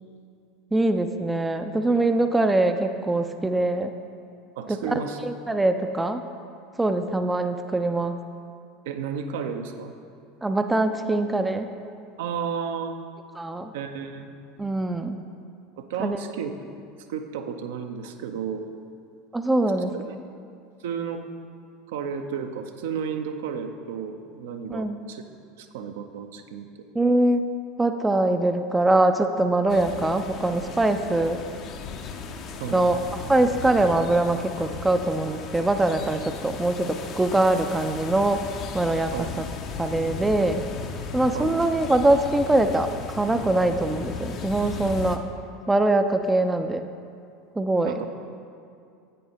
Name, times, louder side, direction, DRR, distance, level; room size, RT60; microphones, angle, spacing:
voice 1, 0.7-3.9 4.9-5.0 5.2-6.2 6.8-8.2 10.4-11.7 13.4-13.7 14.6-15.2 16.0-16.2 19.3-20.2 24.7-25.0 26.9-27.5 27.8-31.4 32.7-38.4 38.7-39.1 39.8-40.6 41.1-45.2 45.7-46.8 47.6-47.9, right 2 dB, 10° right, 8 dB, 0.4 m, -23 dB
voice 2, 4.6-5.2 8.8-9.9 12.2-12.9 13.7-14.3 15.8-16.5 17.1-18.7 20.1-20.2 20.8-21.3 21.9-25.2 25.6-26.7 32.6-32.8 39.1-39.3 41.3-41.7 47.8-48.1, right 7 dB, 60° right, 6 dB, 0.5 m, -32 dB
sound 1, 29.7-45.2, left 5 dB, 40° left, 0.6 m, -36 dB
10.5 x 8.5 x 2.8 m, 2.4 s
figure-of-eight pair, 75°, 0 cm